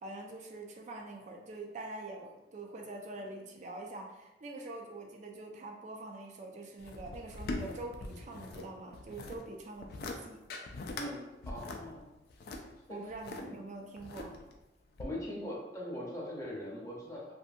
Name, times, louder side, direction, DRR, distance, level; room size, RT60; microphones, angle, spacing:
voice 1, 0.0-10.4 12.9-14.4, right 2 dB, 40° right, 2 dB, 0.3 m, -45 dB
sound 1, 6.8-8.6 8.9-9.4 9.8-10.2 10.5-11.1 11.4-13.4 14.0-14.5 15.0-15.1, left 2 dB, 60° left, 0.3 m, -41 dB
voice 2, 11.0-12.0 12.9-13.0 13.4-13.5 15.0-17.3, left 1 dB, 20° left, -5 dB, 0.6 m, -41 dB
2.6 x 2.5 x 2.3 m, 1.0 s
head